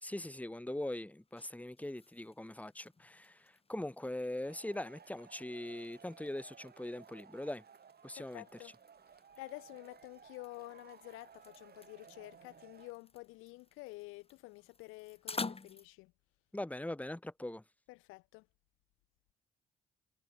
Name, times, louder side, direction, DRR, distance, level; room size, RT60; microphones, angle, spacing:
voice 1, 0.0-7.6 8.0-8.4 16.5-17.6, left 1 dB, 5° left, 2.3 m, -41 dB
sound 1, 1.0-15.9, left 4 dB, 30° left, 4.1 m, -51 dB
Male speech man speaking / Shout / Clapping, 4.5-12.9, right 7 dB, 50° right, 6.6 m, -58 dB
voice 2, 8.2-8.7 9.4-16.1 17.9-18.5, left 23 dB, 85° left, 3.3 m, -50 dB
hypercardioid pair, 55°, 20 cm